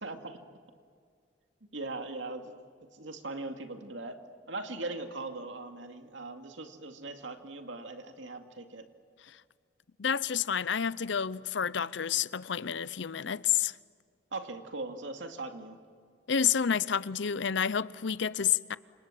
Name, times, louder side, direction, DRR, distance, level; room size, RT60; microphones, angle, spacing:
voice 1, 0.0-0.4 1.7-2.5 2.9-4.2 4.5-8.8 14.3-15.8, right 2 dB, 80° right, 2.4 m, -40 dB
voice 2, 10.0-13.7 16.3-18.8, left 8 dB, 75° left, 0.6 m, -29 dB
29.5 x 27.0 x 7.6 m
head